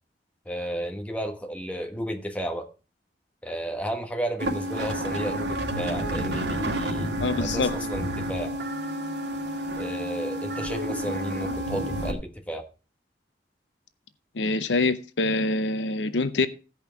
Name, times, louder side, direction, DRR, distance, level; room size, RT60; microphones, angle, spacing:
voice 1, 0.4-2.7 3.4-8.5 9.8-12.7, equal, 10° left, 1.4 m, -33 dB
sound 1, 4.4-12.1, right 1 dB, 80° right, 2.2 m, -30 dB
voice 2, 7.2-7.8 14.3-16.5, left 3 dB, 85° left, 0.7 m, -25 dB
15.5 x 5.4 x 4.6 m
head